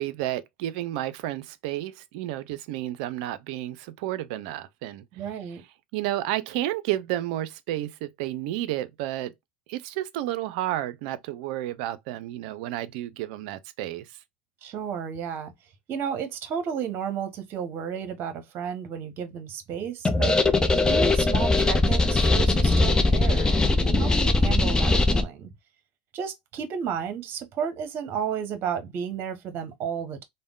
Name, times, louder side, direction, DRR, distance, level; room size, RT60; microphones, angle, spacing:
voice 1, 0.0-5.1 5.9-9.3 9.7-14.1, right 14 dB, 65° right, 0.4 m, -31 dB
voice 2, 5.1-5.6 14.6-15.5 15.9-20.4 20.9-25.5 26.1-30.2, right 7 dB, 45° right, 0.9 m, -32 dB
sound 1, 20.0-25.2, left 2 dB, 15° left, 0.6 m, -21 dB
3.4 x 2.1 x 2.3 m
hypercardioid pair, 90°, 5 cm